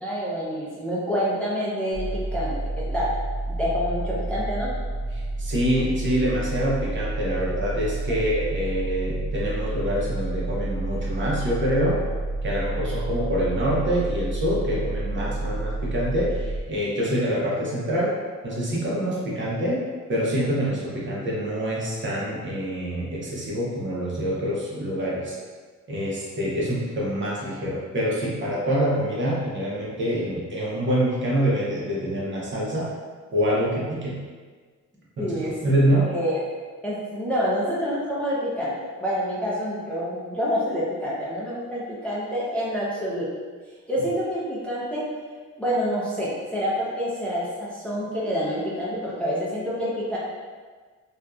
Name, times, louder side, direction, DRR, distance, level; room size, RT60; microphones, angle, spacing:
voice 1, 0.0-3.1 3.6-4.7 35.2-35.5 36.1-36.4 36.8-38.7 39.0-43.3 43.9-45.1 45.6-50.2, equal, 5° left, -8 dB, 0.6 m, -27 dB
sound 1, 1.9-16.6, right 2 dB, 75° right, 0.8 m, -29 dB
voice 2, 5.1-12.0 12.4-18.1 18.4-19.8 20.1-25.3 25.9-32.9 33.3-34.2 35.2-36.1, equal, 40° right, -6 dB, 0.8 m, -26 dB
2.6 x 2.3 x 2.3 m, 1.5 s
cardioid pair, 90°, 30 cm